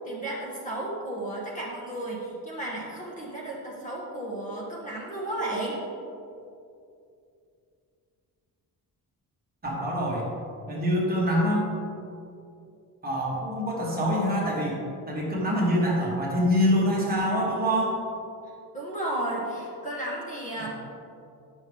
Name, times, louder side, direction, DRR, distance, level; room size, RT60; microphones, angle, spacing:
voice 1, 0.0-5.8 18.7-20.7, right 1 dB, 20° left, -5 dB, 1.3 m, -33 dB
voice 2, 9.6-10.3 10.7-11.7 13.0-14.8 15.1-18.0 20.6-20.7, equal, 25° right, -4 dB, 1.4 m, -25 dB
10.0 x 6.3 x 3.5 m, 2.5 s
cardioid pair, 180°, 38 cm